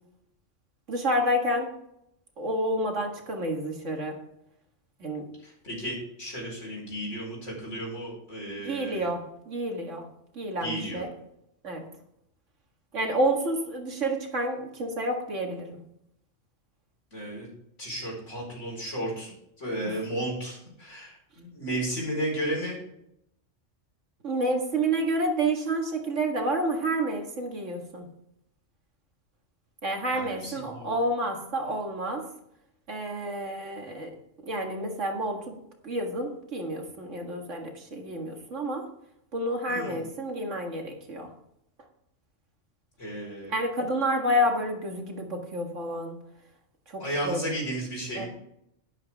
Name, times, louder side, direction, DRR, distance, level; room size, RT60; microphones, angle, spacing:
voice 1, 0.9-1.7 2.4-4.2 5.0-5.2 8.6-10.0 10.4-11.1 11.6-11.9 12.9-15.8 19.8-20.0 24.2-28.1 29.8-32.3 32.9-34.1 34.4-35.6 35.8-38.9 39.3-41.3 43.5-46.1 46.9-47.4 48.2-48.3, right 1 dB, 70° right, 2 dB, 2.2 m, -29 dB
voice 2, 5.6-9.1 10.6-11.0 17.1-17.5 17.8-19.3 19.6-22.8 30.1-30.9 39.7-40.0 43.0-43.5 47.0-48.3, right 1 dB, 70° left, -2 dB, 4.9 m, -33 dB
11.5 x 11.0 x 3.6 m, 0.77 s
omnidirectional pair, 1.3 m